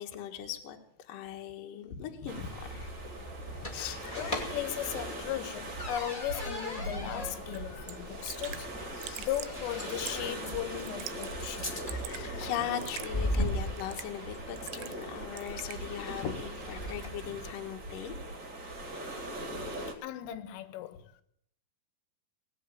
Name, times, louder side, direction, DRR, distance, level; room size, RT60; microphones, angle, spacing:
voice 1, 0.0-2.9 3.5-5.2 9.0-9.3 11.6-18.2 19.3-19.4, left 9 dB, 65° left, 2.3 m, -40 dB
sound 1, 2.3-17.3, equal, 35° left, 0.7 m, -40 dB
sound 2, 2.3-19.9, right 1 dB, 40° right, 1.8 m, -41 dB
voice 2, 4.1-11.8 15.5-15.7 20.0-21.2, left 12 dB, 85° left, 3.5 m, -37 dB
Raindrop / Drip, 7.5-7.6 7.9-8.0 8.3-8.6 9.0-9.6 10.1-10.3 10.8-11.3 11.6-12.2 12.8-13.1 13.8-14.2 14.6-15.1 15.4-15.8, right 14 dB, 80° right, 2.6 m, -43 dB
19.0 x 8.0 x 8.9 m
omnidirectional pair, 5.7 m